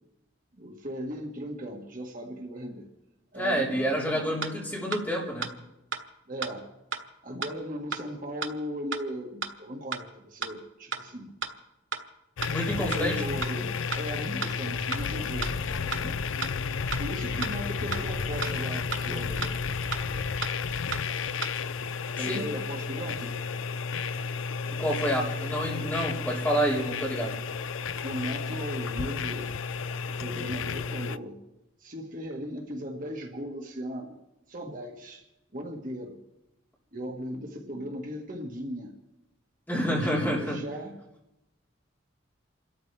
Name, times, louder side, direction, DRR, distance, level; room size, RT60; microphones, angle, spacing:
voice 1, 0.6-2.9 3.3-4.5 6.3-6.7 7.2-11.4 12.8-16.2 17.0-19.6 20.2-20.5 22.2-23.4 27.9-29.6 30.1-31.4 31.8-34.2 34.5-35.2 35.5-36.2 36.9-38.9 39.9-41.0, equal, 45° right, 2 dB, 1.7 m, -37 dB
voice 2, 3.3-5.5 12.5-13.2 22.2-22.4 24.7-27.3 39.7-40.6, equal, 10° left, -5 dB, 3.9 m, -28 dB
sound 1, 4.4-4.5 4.9-5.0 5.4-5.5 5.9-6.0 6.4-6.5 6.9-7.0 7.4-7.5 7.9-8.0 8.4-8.5 8.9-9.0 9.4-9.5 9.9-10.0 10.4-10.5 10.9-11.0 11.4-11.5 11.9-12.0 12.4-12.5 12.9-13.0 13.4-13.5 13.9-14.0 14.4-14.5 14.9-15.0 15.4-15.5 15.9-16.0 16.4-16.5 16.9-17.0 17.4-17.5 17.9-18.0 18.4-18.5 18.9-19.0 19.4-19.5 19.9-20.0 20.4-20.5 20.9-21.0 21.4-21.5, right 5 dB, 85° right, 1.4 m, -32 dB
sound 2, 12.4-31.2, left 5 dB, 90° left, 0.5 m, -32 dB
29.0 x 13.5 x 3.4 m, 0.93 s
head